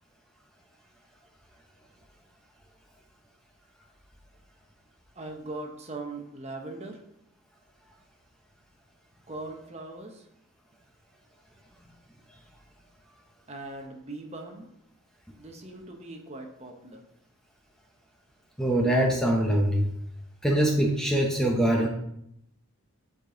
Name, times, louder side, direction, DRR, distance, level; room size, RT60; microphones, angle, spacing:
voice 1, 5.2-7.0 9.3-10.3 13.5-14.7 15.4-17.0, right 2 dB, 30° right, 3 dB, 1.0 m, -40 dB
voice 2, 18.6-19.9 20.4-21.9, right 1 dB, 5° left, 0 dB, 0.8 m, -23 dB
9.5 x 5.1 x 3.9 m, 0.76 s
head